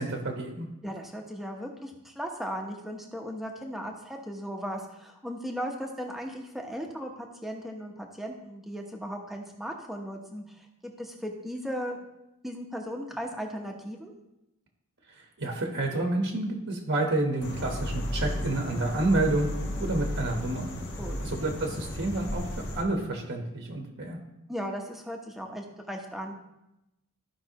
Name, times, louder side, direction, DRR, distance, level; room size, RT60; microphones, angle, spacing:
voice 1, 0.0-0.7 15.1-19.5 19.8-20.7 21.2-22.4 22.7-24.2, right 2 dB, 60° right, 2 dB, 1.2 m, -29 dB
voice 2, 0.8-12.0 12.4-14.1 21.0-21.2 24.5-26.4, equal, ahead, 1 dB, 1.0 m, -37 dB
sound 1, 17.4-22.8, equal, 55° left, 1.4 m, -34 dB
14.5 x 5.4 x 3.0 m, 0.91 s
head